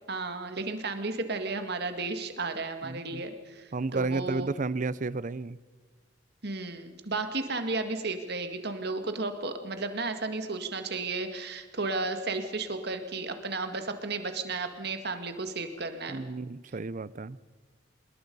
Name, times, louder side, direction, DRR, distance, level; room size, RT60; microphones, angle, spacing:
voice 1, 0.1-4.5 6.4-16.3, right 3 dB, 55° right, 7 dB, 2.0 m, -33 dB
voice 2, 2.8-3.2 3.7-5.6 16.1-17.4, right 3 dB, 40° right, 18 dB, 0.6 m, -32 dB
26.5 x 21.0 x 5.5 m, 1.3 s
head